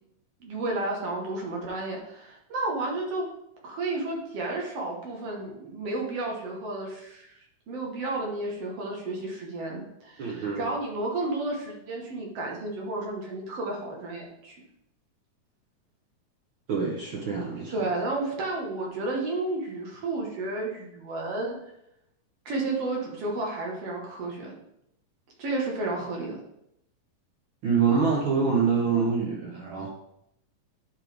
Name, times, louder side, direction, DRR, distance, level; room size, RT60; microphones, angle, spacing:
voice 1, 0.4-3.3 3.6-14.6 17.7-21.6 22.5-24.5 25.4-26.4, right 2 dB, 60° right, -1 dB, 2.1 m, -32 dB
voice 2, 10.2-10.7 16.7-17.9 27.6-29.9, right 5 dB, 85° right, -2 dB, 1.1 m, -25 dB
10.0 x 4.5 x 3.4 m, 0.78 s
omnidirectional pair, 3.6 m